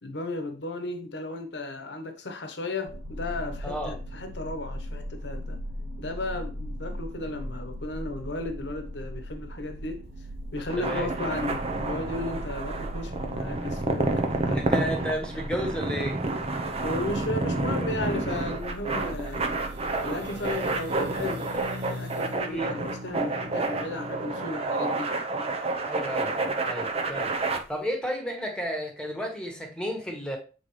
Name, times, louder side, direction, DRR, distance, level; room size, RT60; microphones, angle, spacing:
voice 1, 0.0-5.6 6.0-10.1 10.5-14.6 16.8-19.4 20.0-25.1, left 2 dB, 70° left, 1.0 m, -34 dB
sound 1, 2.9-21.2, equal, 90° right, 0.6 m, -39 dB
voice 2, 3.6-3.9 10.8-11.1 14.5-16.2 22.4-22.8 25.9-26.3 26.7-27.3 27.7-30.4, equal, 5° left, 1.4 m, -32 dB
sound 2, 10.6-27.6, right 2 dB, 35° right, 0.7 m, -29 dB
sound 3, 17.1-17.6 18.2-18.3 18.6-24.5, left 1 dB, 75° right, 1.3 m, -41 dB
7.9 x 3.9 x 3.2 m
head